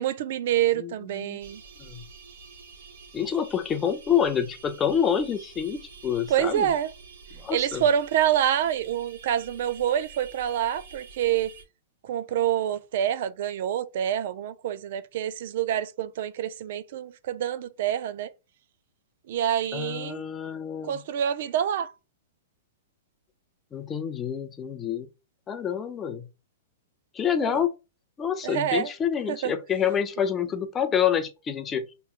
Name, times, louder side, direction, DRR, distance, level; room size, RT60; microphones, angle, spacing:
voice 1, 0.0-1.6 6.3-6.9 7.5-11.5 12.0-18.3 19.3-20.2 20.9-21.9 27.4-27.6 28.4-28.9 29.3-29.5, right 10 dB, 50° right, 0.3 m, -27 dB
sound 1, 1.4-11.6, right 5 dB, 75° right, 1.1 m, -48 dB
voice 2, 3.1-6.7 7.4-7.8 19.7-21.0 23.7-25.1 25.5-26.3 27.1-27.7 28.2-31.8, left 8 dB, 15° left, 0.4 m, -27 dB
5.8 x 3.0 x 2.4 m
hypercardioid pair, 165°, 0 cm